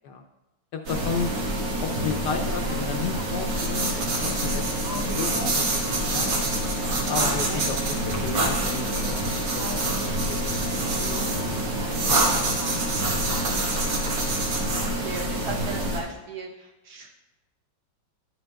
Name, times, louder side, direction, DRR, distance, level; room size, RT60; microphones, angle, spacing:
voice 1, 0.7-1.3 1.7-4.6 4.9-6.3 7.1-10.0 10.3-12.8 13.1-13.8, left 5 dB, 70° left, 3 dB, 1.0 m, -34 dB
sound 1, 0.9-16.0, right 1 dB, 85° right, 2.0 m, -26 dB
voice 2, 14.8-17.1, right 4 dB, 60° right, 0 dB, 1.3 m, -37 dB
10.5 x 8.6 x 2.3 m, 1.0 s
omnidirectional pair, 2.1 m